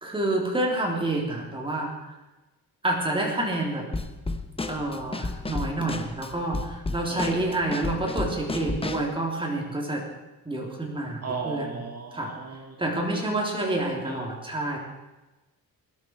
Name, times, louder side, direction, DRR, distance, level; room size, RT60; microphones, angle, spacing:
voice 1, 0.0-1.9 2.8-3.9 4.7-10.0 10.5-11.8 12.1-12.3 12.8-14.8, right 2 dB, 15° right, -1 dB, 3.7 m, -28 dB
Drum kit / Snare drum, 3.9-9.1, left 3 dB, 15° left, 1.0 m, -32 dB
voice 2, 7.1-7.4 11.2-12.8 14.1-14.2, right 4 dB, 40° right, 1 dB, 2.2 m, -35 dB
20.0 x 12.5 x 4.8 m, 1.1 s
wide cardioid pair, 150°, 37 cm